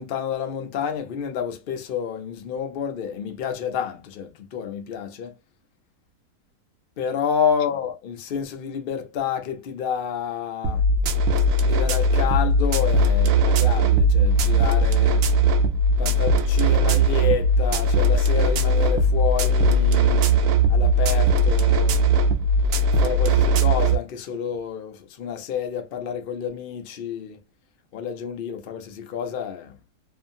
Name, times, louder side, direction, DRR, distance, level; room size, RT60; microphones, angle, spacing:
voice 1, 0.0-5.3 7.0-10.8 11.6-15.2 16.0-20.4 20.7-22.0 23.0-27.4 27.9-29.7, left 8 dB, 80° left, 0.5 m, -29 dB
sound 1, 10.6-24.0, right 1 dB, 70° right, 0.8 m, -19 dB
2.8 x 2.4 x 2.6 m
omnidirectional pair, 1.7 m